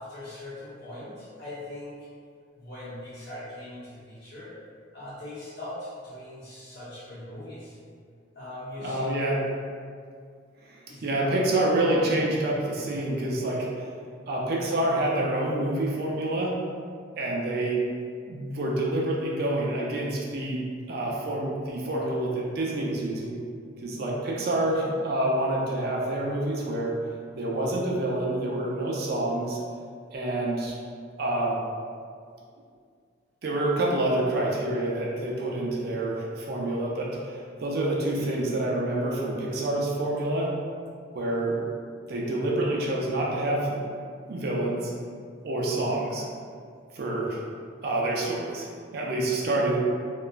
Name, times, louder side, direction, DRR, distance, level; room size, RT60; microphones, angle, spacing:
voice 1, 0.0-2.0 2.6-4.5 4.9-7.8 8.3-9.1 10.9-11.4, left 1 dB, 55° left, -10 dB, 1.0 m, -40 dB
voice 2, 8.8-9.4 10.6-13.9 14.3-16.6 17.2-17.8 18.3-23.4 23.8-26.9 27.3-29.6 30.1-30.7 31.2-31.6 33.4-40.5 41.1-41.6 42.1-43.8 44.3-44.9 45.4-46.3 46.9-47.4 47.8-49.8, right 1 dB, 50° right, -3 dB, 0.4 m, -27 dB
2.9 x 2.2 x 2.3 m, 2.2 s
head